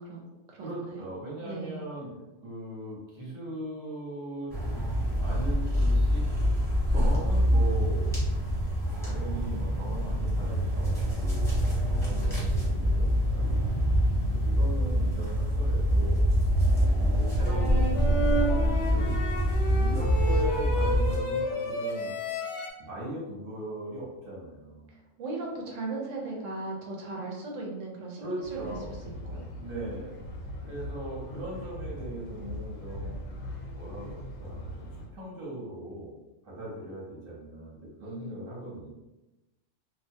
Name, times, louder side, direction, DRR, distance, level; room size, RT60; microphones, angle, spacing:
voice 1, 0.0-1.1 1.4-1.8 24.9-29.0 29.3-29.4 38.0-38.3 38.8-38.9, right 2 dB, 75° right, -1 dB, 1.0 m, -38 dB
voice 2, 0.6-2.2 2.4-4.5 5.2-6.2 6.9-8.1 9.0-13.7 14.4-16.2 17.0-19.2 19.7-22.1 22.8-24.9 28.2-28.9 29.5-30.1 30.6-33.1 33.8-36.1 36.4-38.9, right 1 dB, 50° right, -6 dB, 1.0 m, -39 dB
sound 1, 4.5-21.2, equal, 5° left, 0.7 m, -25 dB
sound 2, 17.4-22.7, equal, 70° left, 0.5 m, -31 dB
sound 3, 28.4-35.1, left 1 dB, 85° left, 1.0 m, -40 dB
2.4 x 2.2 x 2.6 m, 1.0 s
omnidirectional pair, 1.3 m